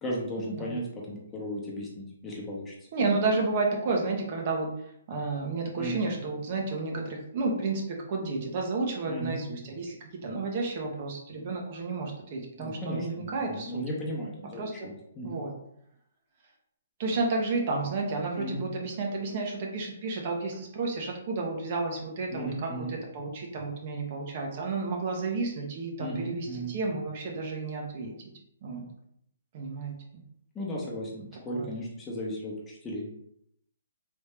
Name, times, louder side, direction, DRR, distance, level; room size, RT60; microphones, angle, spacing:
voice 1, 0.0-2.9 5.7-6.0 9.1-9.4 12.6-15.4 18.3-18.6 22.3-23.0 26.0-26.8 30.5-33.1, equal, 15° left, -4 dB, 0.9 m, -35 dB
voice 2, 2.9-4.7 5.1-13.8 14.5-14.9 15.2-15.5 17.0-28.1 28.6-28.8 29.5-30.2 31.5-31.7, right 3 dB, 45° right, 1 dB, 0.8 m, -31 dB
3.3 x 2.6 x 3.3 m, 0.75 s
hypercardioid pair, 145°, 0 cm